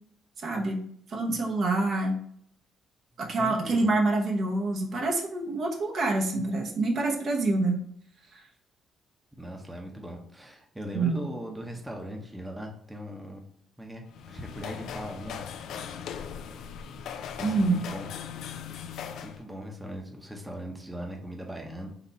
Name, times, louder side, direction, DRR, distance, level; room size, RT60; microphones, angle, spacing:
voice 1, 0.4-0.8 1.1-2.2 3.2-7.8 10.9-11.2 17.4-17.8, right 2 dB, 60° right, 0 dB, 1.0 m, -26 dB
voice 2, 3.3-3.9 9.3-13.4 13.8-15.5 16.4-16.6 17.4-18.1 19.2-21.9, equal, 10° right, 2 dB, 0.8 m, -39 dB
sound 1, 14.1-19.4, left 7 dB, 80° left, 0.3 m, -39 dB
4.0 x 2.9 x 4.2 m, 0.64 s
cardioid pair, 90°, 0 cm